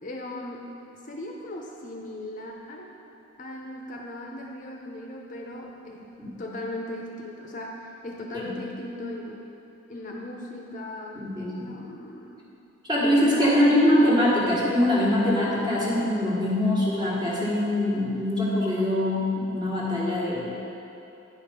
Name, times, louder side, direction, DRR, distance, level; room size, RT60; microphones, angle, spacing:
voice 1, 0.0-0.8 1.1-2.9 3.4-6.1 6.4-9.4 9.9-12.4 13.0-13.9, left 1 dB, 40° left, -1 dB, 0.7 m, -38 dB
voice 2, 11.1-11.7 12.9-20.5, left 1 dB, 20° right, -6 dB, 1.5 m, -23 dB
9.8 x 4.8 x 5.2 m, 3.0 s
head